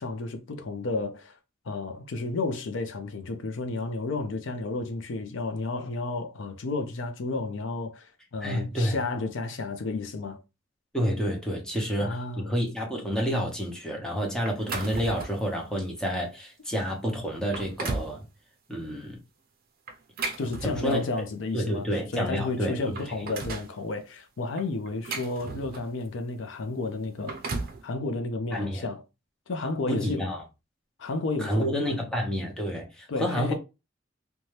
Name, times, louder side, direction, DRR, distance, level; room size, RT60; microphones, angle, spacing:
voice 1, 0.0-1.3 1.6-10.4 12.0-12.5 20.4-21.9 22.1-27.4 27.8-29.0 29.5-30.3 31.0-32.1 33.1-33.5, left 3 dB, 70° left, 0.5 m, -32 dB
voice 2, 8.4-9.0 10.9-18.2 18.7-19.2 20.6-21.0 21.5-22.8 23.2-23.3 28.5-28.8 29.9-30.4 31.4-33.5, equal, 5° left, 0.8 m, -29 dB
sound 1, 14.4-15.5 16.1-16.2 16.8-16.9 17.4-18.2 19.9-21.2 22.2-22.3 22.7-23.7 24.6-26.0 27.0-27.8, right 3 dB, 50° right, 0.6 m, -35 dB
2.7 x 2.2 x 3.1 m
head